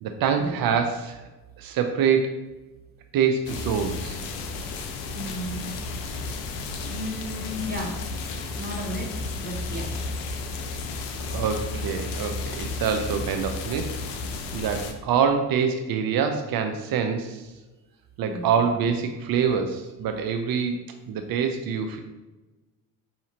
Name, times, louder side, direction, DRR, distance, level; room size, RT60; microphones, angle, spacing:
voice 1, 0.0-1.2 1.6-2.3 3.1-4.2 11.3-14.0 14.5-17.4 18.2-20.8 21.1-22.0, right 6 dB, 60° right, 6 dB, 0.5 m, -25 dB
sound 1, 3.5-14.9, left 3 dB, 80° left, 0.6 m, -33 dB
voice 2, 5.1-5.7 6.8-8.0 8.5-9.1 9.4-9.9 18.3-18.5, equal, 25° right, -2 dB, 1.3 m, -34 dB
4.9 x 2.8 x 2.8 m, 1.1 s
supercardioid pair, 65°, 42 cm